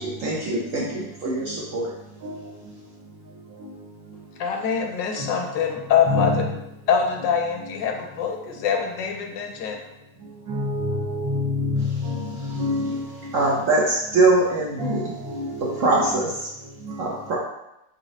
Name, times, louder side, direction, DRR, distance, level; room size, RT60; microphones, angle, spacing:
voice 1, 0.0-1.9 12.4-12.6 13.3-15.1 15.6-16.5 17.0-17.4, right 2 dB, 60° right, 0.8 m, -23 dB
voice 2, 4.4-6.4 6.9-9.8, left 7 dB, 80° left, 1.3 m, -24 dB
voice 3, 6.1-6.4 10.5-13.1 14.8-16.1, left 2 dB, 75° right, 1.7 m, -27 dB
4.3 x 4.1 x 2.7 m
omnidirectional pair, 2.0 m